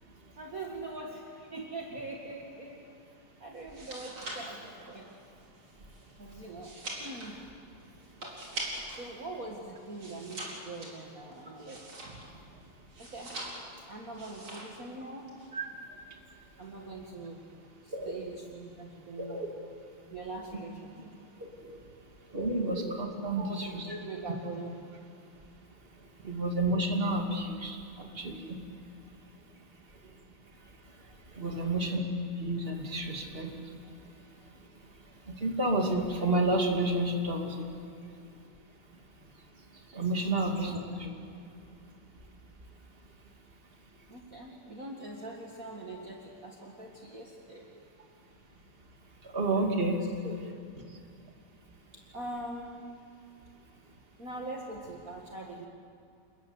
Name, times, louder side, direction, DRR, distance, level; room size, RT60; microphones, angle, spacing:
voice 1, 0.4-2.9 3.4-5.1 6.2-7.4 8.9-12.2 13.0-13.4 13.9-15.3 16.6-17.5 17.8-19.5 20.1-21.1 23.3-24.8 26.2-26.3 31.5-31.8 40.6-41.0 44.1-47.7 50.2-50.4 50.7-50.9 51.9-52.8 53.6-53.7 54.2-55.7, right 2 dB, 40° right, -1 dB, 2.3 m, -43 dB
sound 1, 3.6-9.1 9.4-12.4 12.9-13.8 14.1-14.8 15.1-15.5, right 1 dB, 75° right, 5.6 m, -42 dB
voice 2, 17.9-18.4 19.2-19.5 21.4-21.8 22.3-23.9 26.2-28.6 31.3-32.0 32.4-33.7 35.3-37.7 39.9-41.1 49.2-50.0, right 2 dB, 25° right, 2 dB, 2.7 m, -30 dB
28.0 x 21.5 x 8.1 m, 2.5 s
omnidirectional pair, 2.3 m